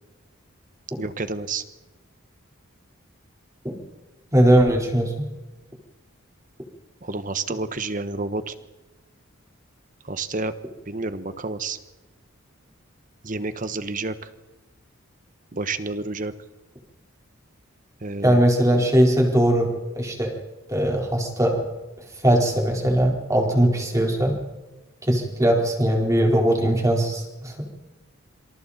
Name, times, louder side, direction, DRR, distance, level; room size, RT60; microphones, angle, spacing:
voice 1, 1.0-1.6 7.0-8.5 10.0-10.5 10.9-11.8 13.2-14.3 15.5-16.3 18.0-18.4, right 3 dB, 40° right, 11 dB, 1.3 m, -29 dB
voice 2, 4.3-5.3 18.2-19.7 20.0-20.3 20.7-21.7 22.2-24.4 25.0-27.6, right 1 dB, 15° right, 0 dB, 4.4 m, -20 dB
27.0 x 26.5 x 4.3 m, 1.1 s
head